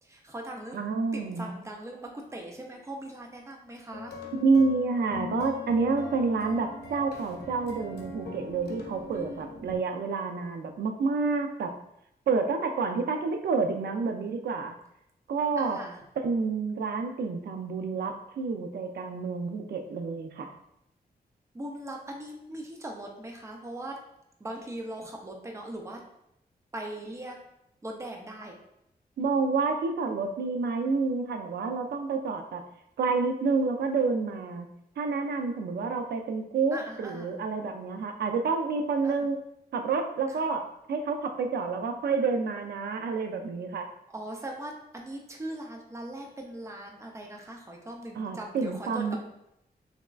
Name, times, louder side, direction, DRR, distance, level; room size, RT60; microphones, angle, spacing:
voice 1, 0.0-0.8 1.1-4.2 9.1-9.4 15.6-16.0 21.5-24.0 24.4-26.0 26.7-27.4 27.8-28.6 36.7-37.3 39.0-39.3 44.1-49.2, right 1 dB, 15° right, 1 dB, 0.5 m, -40 dB
voice 2, 0.7-1.5 4.3-11.7 12.3-14.8 15.3-15.8 16.2-20.5 29.2-32.6 33.0-34.7 35.0-39.4 39.7-43.9 48.2-49.2, right 4 dB, 80° right, 5 dB, 0.4 m, -29 dB
sound 1, 3.9-9.8, left 3 dB, 80° left, 0.6 m, -40 dB
3.5 x 3.0 x 2.4 m, 0.80 s
wide cardioid pair, 105°, 16 cm